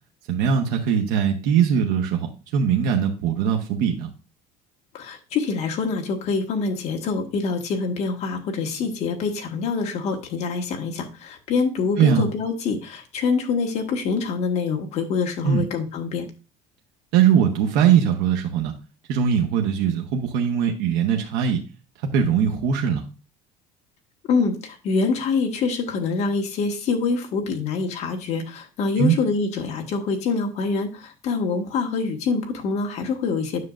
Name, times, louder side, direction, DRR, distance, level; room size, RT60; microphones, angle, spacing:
voice 1, 0.3-4.1 12.0-12.3 15.4-15.7 17.1-18.7 19.1-21.6 22.0-23.0 29.0-29.1, right 8 dB, 70° right, 3 dB, 1.0 m, -21 dB
voice 2, 4.9-16.3 24.3-33.6, left 4 dB, 45° left, 3 dB, 1.5 m, -25 dB
9.6 x 6.5 x 2.4 m, 0.31 s
cardioid pair, 175°, 16 cm